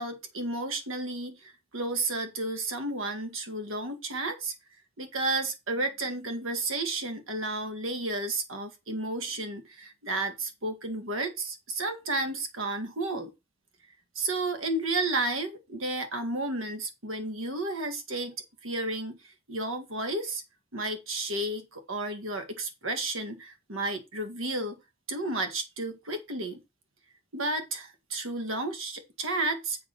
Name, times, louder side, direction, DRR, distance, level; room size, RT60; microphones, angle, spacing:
voice 1, 0.0-4.5 5.0-13.3 14.2-18.4 18.6-20.4 20.7-24.8 25.1-26.6 27.3-29.8, right 2 dB, 70° right, 1.9 m, -32 dB
7.6 x 4.9 x 5.8 m
head